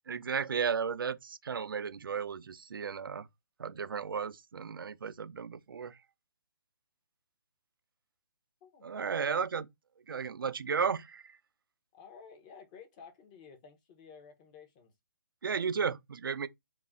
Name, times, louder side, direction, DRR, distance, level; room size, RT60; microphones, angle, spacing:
voice 1, 0.1-3.3 3.6-6.0 8.8-9.7 10.1-11.4 15.4-16.5, right 6 dB, 80° right, 0.4 m, -34 dB
voice 2, 8.6-9.1 11.9-14.9, left 6 dB, 20° left, 0.6 m, -53 dB
2.5 x 2.1 x 3.4 m
hypercardioid pair, 160°, 11 cm